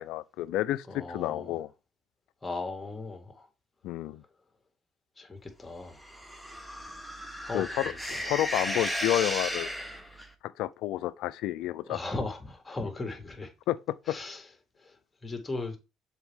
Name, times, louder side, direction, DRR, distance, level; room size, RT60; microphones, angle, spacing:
voice 1, 0.0-1.7 3.8-4.2 7.5-9.7 10.4-12.0 13.7-14.2, left 14 dB, 75° left, 0.4 m, -30 dB
voice 2, 0.9-1.5 2.4-3.5 5.2-6.0 7.4-8.0 11.9-13.5 14.1-14.4 14.8-14.9 15.2-15.8, left 3 dB, 20° left, 2.2 m, -37 dB
sound 1, 6.0-10.3, equal, 5° right, 1.3 m, -34 dB
7.0 x 4.2 x 3.7 m
supercardioid pair, 65°, 0 cm